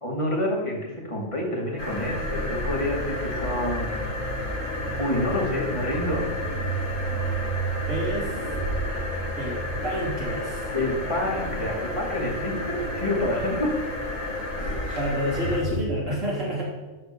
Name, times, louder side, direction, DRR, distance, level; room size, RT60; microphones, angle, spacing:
voice 1, 0.0-4.0 5.0-6.2 10.7-13.7 16.1-16.2, left 1 dB, 25° left, -2 dB, 2.4 m, -28 dB
sound 1, 1.8-15.8, equal, 85° left, 2.5 m, -30 dB
voice 2, 7.9-8.4 9.3-10.7 14.9-16.6, equal, 85° right, -5 dB, 3.6 m, -29 dB
12.5 x 4.4 x 6.9 m, 1.3 s
omnidirectional pair, 1.3 m